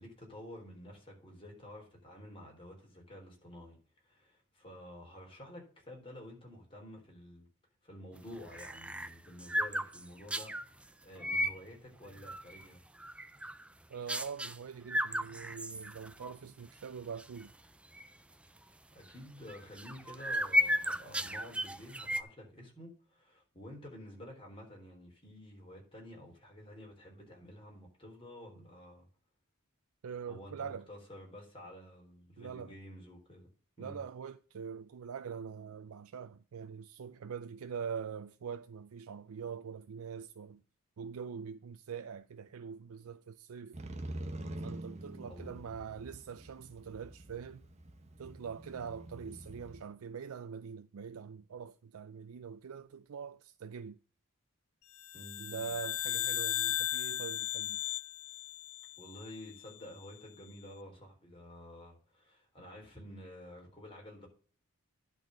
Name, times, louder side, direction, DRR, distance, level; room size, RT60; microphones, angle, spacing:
voice 1, 0.0-3.8 4.0-7.5 7.8-10.5 10.8-12.8 18.9-29.1 30.3-33.5 33.8-34.0 45.3-45.6 55.1-55.6 59.0-64.3, left 1 dB, 25° left, 3.7 m, -50 dB
sound 1, 8.2-10.7 11.2-11.6 12.1-12.6 13.0-13.7 14.1-14.6 14.9-16.3 16.7-16.8 17.2-17.4 17.9-18.1 19.5-22.2, left 1 dB, 5° right, 0.4 m, -34 dB
voice 2, 13.9-17.5 30.0-30.9 32.4-32.7 33.8-40.6 41.0-43.8 44.6-47.6 48.2-54.0 55.4-57.8, right 6 dB, 80° right, 0.4 m, -43 dB
Motorcycle, 43.7-49.8, right 1 dB, 30° right, 0.9 m, -45 dB
sound 2, 55.0-59.5, left 14 dB, 85° left, 0.5 m, -36 dB
10.5 x 4.1 x 6.4 m
head